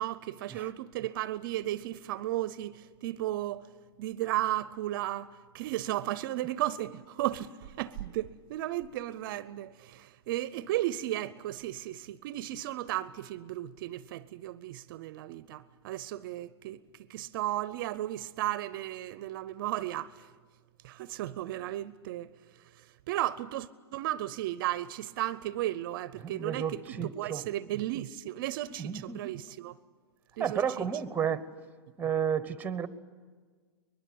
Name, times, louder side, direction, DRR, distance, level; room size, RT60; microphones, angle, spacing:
voice 1, 0.0-3.7 4.0-5.3 5.5-16.8 17.1-20.3 20.8-22.3 23.1-29.7 30.4-30.9, right 14 dB, 55° right, 0.7 m, -34 dB
voice 2, 26.2-27.5 28.8-29.2 30.4-31.5 32.0-32.9, right 8 dB, 10° right, 1.0 m, -32 dB
23.0 x 21.5 x 8.6 m
hypercardioid pair, 135°, 14 cm